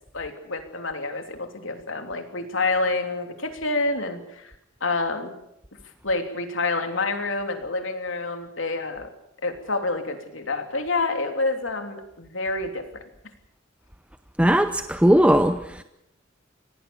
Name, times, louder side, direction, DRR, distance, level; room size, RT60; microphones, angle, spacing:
voice 1, 0.1-4.5 4.8-5.3 6.0-9.1 9.4-12.9, left 3 dB, 90° left, 5 dB, 3.2 m, -28 dB
voice 2, 14.4-15.8, equal, 5° right, 9 dB, 0.8 m, -19 dB
26.0 x 18.0 x 7.1 m, 0.81 s
head